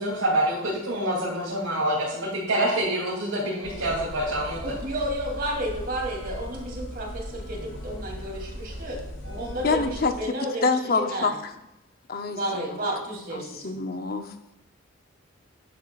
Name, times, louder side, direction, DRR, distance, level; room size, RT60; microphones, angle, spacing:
voice 1, 0.0-4.6 9.3-9.4, right 1 dB, 85° right, -7 dB, 2.9 m, -26 dB
sound 1, 3.6-10.1, left 1 dB, 65° left, 2.9 m, -38 dB
voice 2, 4.5-9.0 9.3-11.3 12.3-13.7, right 1 dB, 45° right, -1 dB, 2.9 m, -32 dB
voice 3, 9.6-10.4 10.6-11.3 12.1-12.8 13.3-14.3, left 4 dB, 45° left, 7 dB, 0.7 m, -26 dB
12.5 x 10.0 x 2.4 m, 0.85 s
head